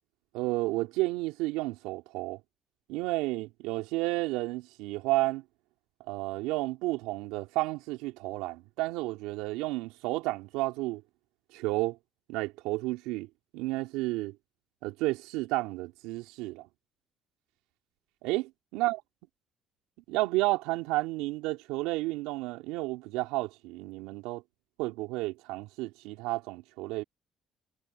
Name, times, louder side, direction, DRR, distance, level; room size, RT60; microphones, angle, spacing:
voice 1, 0.3-2.4 2.9-5.4 6.1-11.0 11.5-12.0 12.3-14.4 14.8-16.7 18.2-19.0 20.1-24.4 24.8-27.0, right 20 dB, 80° right, 2.8 m, -31 dB
hypercardioid pair, 55°, 0 cm